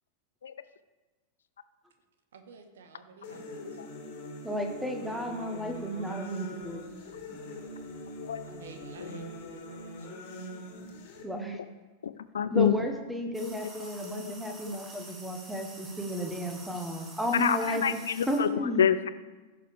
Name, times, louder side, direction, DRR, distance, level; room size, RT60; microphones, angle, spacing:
voice 1, 2.3-3.8 8.5-10.1, right 4 dB, 65° right, 7 dB, 1.2 m, -50 dB
sound 1, 3.2-11.2, left 1 dB, 50° left, 2.0 m, -42 dB
voice 2, 4.4-6.9 11.2-11.6 12.5-18.0 18.3-18.8, equal, 5° right, 3 dB, 1.3 m, -33 dB
voice 3, 12.0-12.9 13.4-14.3 14.7-14.8 17.3-19.1, left 8 dB, 65° left, 13 dB, 0.5 m, -28 dB
sound 2, 13.3-18.4, right 2 dB, 20° right, 2.1 m, -48 dB
15.5 x 6.8 x 3.4 m, 1.2 s
figure-of-eight pair, 90°, 0 cm